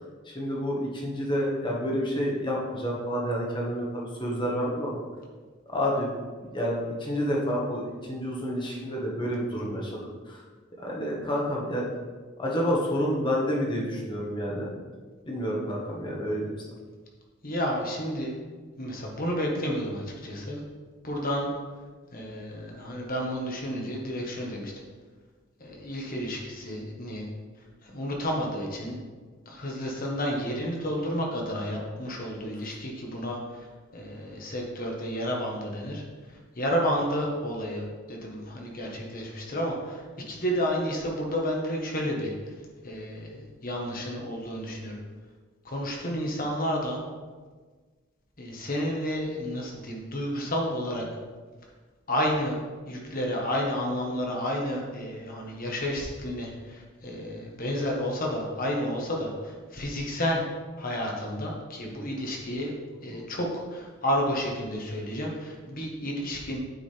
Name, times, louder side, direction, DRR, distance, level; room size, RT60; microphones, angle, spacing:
voice 1, 0.2-5.0 5.7-6.1 6.5-10.4 10.8-11.8 12.4-14.7 15.2-16.5 63.1-63.3, equal, 25° left, -3 dB, 1.4 m, -29 dB
voice 2, 17.4-18.3 18.8-20.6 21.0-21.5 22.1-24.7 25.6-27.3 27.8-29.0 29.4-33.7 33.9-36.0 36.6-42.3 42.8-45.0 45.6-47.0 48.4-51.0 52.1-52.6 52.9-60.4 60.8-62.7 63.0-66.6, equal, 45° left, -1 dB, 1.4 m, -31 dB
9.2 x 5.0 x 3.4 m, 1.4 s
head